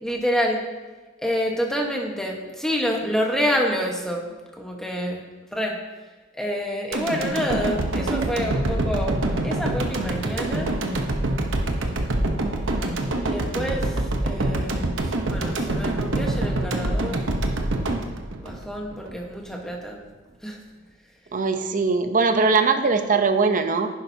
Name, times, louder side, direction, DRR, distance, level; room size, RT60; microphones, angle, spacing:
voice 1, 0.0-0.6 1.2-5.2 5.5-5.8 6.3-10.7 13.2-17.3 18.4-20.0 20.4-20.6, equal, 5° left, 0 dB, 1.2 m, -28 dB
sound 1, 6.9-19.1 19.5-19.6, right 2 dB, 70° right, 0.9 m, -25 dB
voice 2, 21.3-23.9, right 4 dB, 40° right, 8 dB, 0.7 m, -21 dB
10.5 x 10.0 x 2.8 m, 1.3 s
head